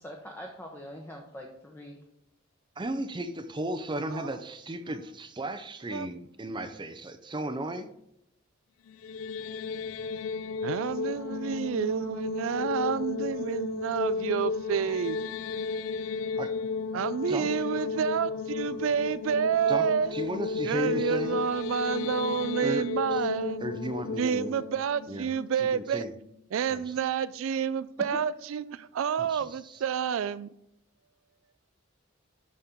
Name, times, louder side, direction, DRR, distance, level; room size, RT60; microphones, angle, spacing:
voice 1, 0.0-2.0 16.0-16.4 28.1-28.2, left 1 dB, 10° left, 0.9 m, -43 dB
voice 2, 2.8-7.9 16.4-16.5 17.3-17.5 19.7-19.8 20.1-21.4 22.6-22.8 23.1-23.2 23.6-24.6 25.1-25.3 25.6-26.1 26.7-26.9 29.2-29.8, right 1 dB, 25° right, 0.5 m, -35 dB
sound 1, 8.9-26.0, left 4 dB, 90° left, 0.4 m, -33 dB
voice 3, 10.6-15.2 16.9-20.1 20.6-23.7 24.2-26.0 26.5-30.5, right 7 dB, 75° right, 0.3 m, -29 dB
12.5 x 4.2 x 3.7 m
head